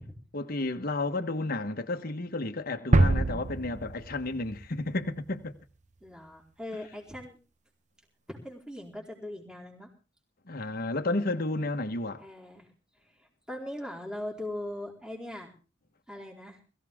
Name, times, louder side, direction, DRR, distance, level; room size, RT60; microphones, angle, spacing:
voice 1, 0.3-5.5 10.5-12.2, left 2 dB, 50° left, 1.3 m, -32 dB
sound 1, 2.9-4.8, right 2 dB, 40° right, 0.8 m, -25 dB
voice 2, 6.0-7.4 8.3-9.9 12.2-12.7 13.0-15.5 16.1-16.6, left 1 dB, 5° right, 4.3 m, -40 dB
22.0 x 15.0 x 3.6 m
head